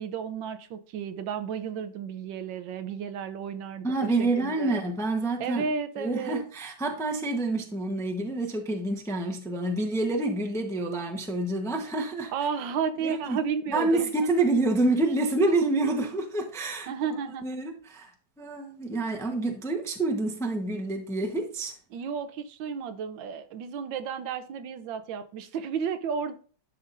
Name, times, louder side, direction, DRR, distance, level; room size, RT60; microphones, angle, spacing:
voice 1, 0.0-4.8 5.4-6.4 12.3-14.1 16.9-17.5 21.9-26.3, right 6 dB, 85° right, 1.5 m, -33 dB
voice 2, 3.8-5.7 6.0-12.3 13.0-13.4 13.7-16.9 17.4-18.1 18.4-21.7, right 2 dB, 5° left, 0.5 m, -27 dB
11.5 x 5.7 x 2.6 m
omnidirectional pair, 2.0 m